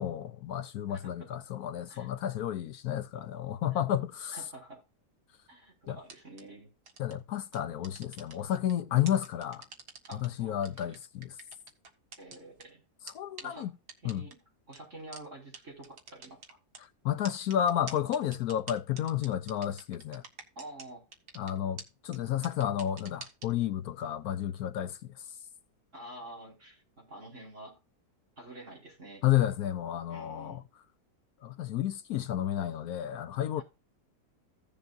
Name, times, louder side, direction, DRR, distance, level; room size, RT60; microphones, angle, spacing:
voice 1, 0.0-4.4 5.9-6.0 7.0-9.7 10.2-11.3 13.1-13.7 14.0-14.3 17.0-20.2 21.4-25.0 29.2-30.6 31.4-33.6, left 11 dB, 70° left, 1.1 m, -31 dB
voice 2, 0.9-1.3 1.9-2.1 3.7-3.8 4.3-4.8 5.5-6.7 10.1-10.9 12.2-12.8 13.4-13.7 14.0-14.4 14.7-16.6 20.6-21.1 25.9-27.8 28.4-29.2 30.1-30.6 33.6-33.7, right 1 dB, 45° right, 5.5 m, -48 dB
sound 1, 6.0-6.4 6.9-7.1 7.5-8.7 9.1-10.3 10.6-12.6 13.1-13.2 13.4-13.5 13.9-14.3 14.7-14.8 15.1-15.2 15.5-15.6 15.8-16.8 17.2-20.9 21.1-21.5 21.8-21.9 22.1-22.2 22.4-23.5, right 5 dB, 75° right, 2.1 m, -45 dB
16.0 x 7.0 x 2.6 m
omnidirectional pair, 1.7 m